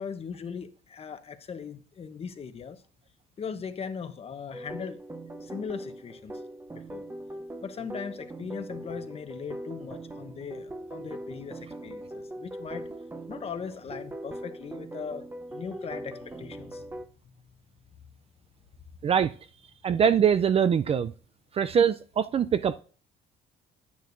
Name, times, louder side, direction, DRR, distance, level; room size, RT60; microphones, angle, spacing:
voice 1, 0.0-2.8 3.4-5.0 5.4-6.4 6.7-7.1 7.6-12.9 13.3-16.9 17.2-17.3, left 6 dB, 35° left, 1.0 m, -39 dB
sound 1, 4.5-17.1, right 1 dB, 15° right, 0.8 m, -41 dB
voice 2, 19.8-21.1 21.5-22.8, right 8 dB, 35° right, 0.4 m, -23 dB
9.9 x 9.5 x 2.6 m
cardioid pair, 110°, 17 cm